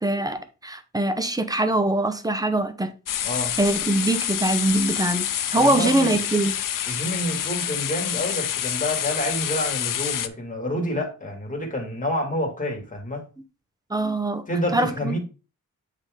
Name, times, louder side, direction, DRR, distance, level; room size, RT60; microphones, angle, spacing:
voice 1, 0.0-2.9 3.6-6.5 13.9-14.4 14.7-15.2, right 2 dB, 10° right, 0.9 m, -23 dB
sound 1, 3.1-10.3, left 10 dB, 75° left, 0.6 m, -27 dB
voice 2, 3.2-3.5 5.5-6.2 6.9-13.3 14.5-15.2, left 1 dB, 25° left, 2.3 m, -28 dB
8.8 x 3.8 x 3.5 m
wide cardioid pair, 105°, 33 cm